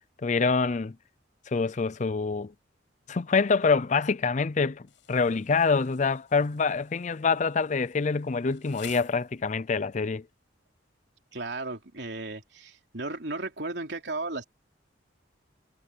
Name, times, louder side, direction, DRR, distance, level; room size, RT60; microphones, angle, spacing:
voice 1, 0.2-0.9 1.5-2.5 3.1-10.2, left 4 dB, 40° left, 0.5 m, -26 dB
Insect, 4.9-9.8, left 11 dB, 80° left, 6.5 m, -53 dB
voice 2, 11.3-14.4, right 2 dB, 65° right, 3.4 m, -35 dB
head